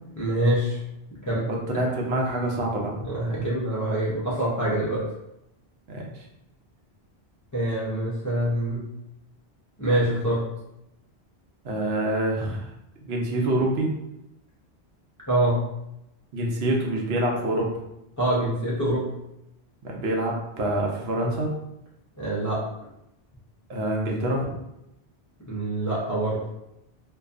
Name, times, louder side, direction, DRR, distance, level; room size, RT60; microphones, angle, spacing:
voice 1, 0.2-0.8 1.3-1.8 3.1-5.0 7.5-8.9 9.8-10.4 15.3-15.6 18.2-19.1 22.2-22.6 25.5-26.4, right 1 dB, 25° left, -7 dB, 0.4 m, -25 dB
voice 2, 1.5-2.9 5.9-6.2 11.6-12.7 13.0-13.9 16.3-17.8 19.8-21.5 23.7-24.5, right 1 dB, 75° right, -1 dB, 0.8 m, -26 dB
2.6 x 2.3 x 2.4 m, 0.85 s
omnidirectional pair, 1.1 m